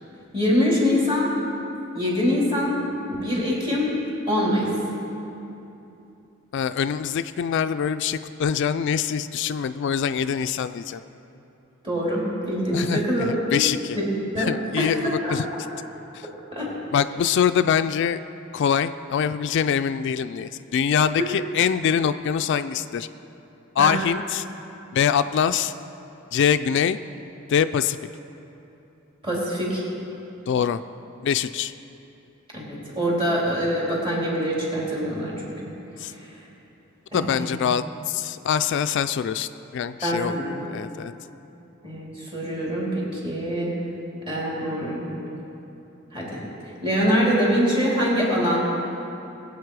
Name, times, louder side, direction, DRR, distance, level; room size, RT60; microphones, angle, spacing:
voice 1, 0.3-1.3 1.9-2.8 3.1-3.9 4.3-4.7 11.8-13.6 13.9-14.1 14.3-15.6 16.5-16.7 23.8-23.9 29.2-29.8 32.5-35.5 37.1-37.5 40.0-40.5 41.8-43.7 44.3-45.1 46.1-46.4 46.8-48.6, equal, 25° right, -5 dB, 3.4 m, -24 dB
voice 2, 6.5-11.0 12.7-14.0 14.4-15.4 16.1-16.3 16.9-18.2 18.5-23.1 23.8-24.4 24.9-25.7 26.3-27.0 27.5-28.0 30.5-30.8 31.2-31.7 36.0-36.1 37.1-41.1, left 7 dB, 55° left, 11 dB, 0.3 m, -24 dB
21.0 x 8.2 x 4.7 m, 2.9 s
head